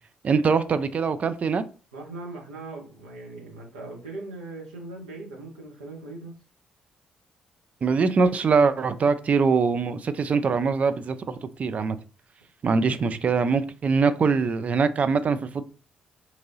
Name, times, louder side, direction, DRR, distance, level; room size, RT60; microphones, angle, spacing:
voice 1, 0.2-1.6 7.8-12.0 12.6-15.6, right 5 dB, 40° right, 12 dB, 0.3 m, -23 dB
voice 2, 1.9-6.3, right 2 dB, 75° right, -3 dB, 0.9 m, -39 dB
2.9 x 2.6 x 2.7 m, 0.37 s
figure-of-eight pair, 40°, 4 cm